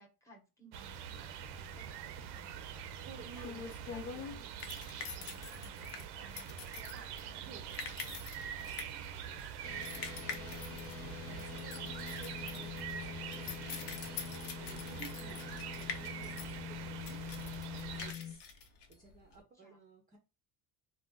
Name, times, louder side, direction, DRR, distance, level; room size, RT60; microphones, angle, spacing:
voice 1, 0.0-4.5 5.0-9.2 19.5-19.8, equal, 5° left, 2 dB, 0.8 m, -61 dB
sound 1, 0.7-18.1, right 8 dB, 70° right, 0.5 m, -45 dB
sound 2, 2.7-19.4, left 6 dB, 75° left, 0.8 m, -46 dB
voice 2, 3.0-3.8 4.1-4.2 6.2-6.3 7.3-7.7 10.2-10.9 11.3-13.9 14.6-17.2 17.8-18.5 18.9-20.2, right 5 dB, 20° right, 2 dB, 0.4 m, -55 dB
sound 3, 9.6-18.4, left 10 dB, 35° left, 0.4 m, -45 dB
2.5 x 2.1 x 3.5 m, 0.30 s
cardioid pair, 150°, 42 cm